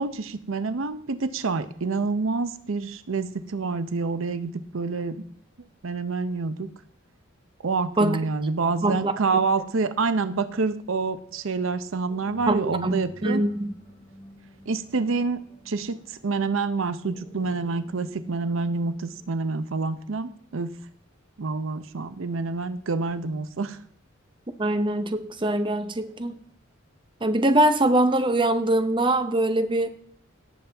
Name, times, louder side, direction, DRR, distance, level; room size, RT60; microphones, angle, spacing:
voice 1, 0.0-5.2 5.8-6.7 7.6-13.4 14.7-15.4 15.7-20.7 21.4-23.8, right 4 dB, 75° right, 12 dB, 0.6 m, -27 dB
voice 2, 8.8-9.1 12.5-13.0 13.2-13.7 24.6-26.3 27.2-29.9, right 1 dB, 25° right, 9 dB, 0.7 m, -23 dB
sound 1, 12.1-19.6, equal, 15° left, 5.4 m, -49 dB
17.5 x 7.2 x 3.4 m, 0.63 s
head